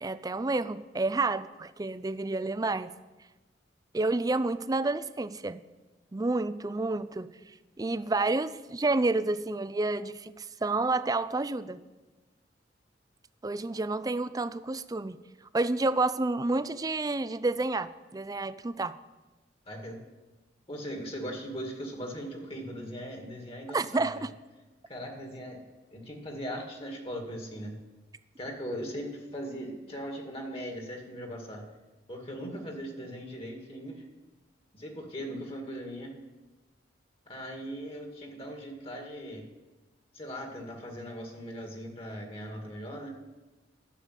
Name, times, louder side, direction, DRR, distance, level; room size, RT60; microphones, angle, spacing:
voice 1, 0.0-2.9 3.9-5.6 6.1-7.3 7.8-11.8 13.4-15.2 15.5-19.0 23.7-24.3, right 2 dB, 20° right, 14 dB, 0.4 m, -29 dB
voice 2, 19.7-20.0 20.7-24.3 24.9-25.6 25.9-27.8 28.4-31.6 32.1-34.0 34.7-36.2 37.3-39.5 40.1-43.2, equal, 35° left, 2 dB, 2.1 m, -39 dB
11.5 x 7.0 x 9.4 m, 1.2 s
head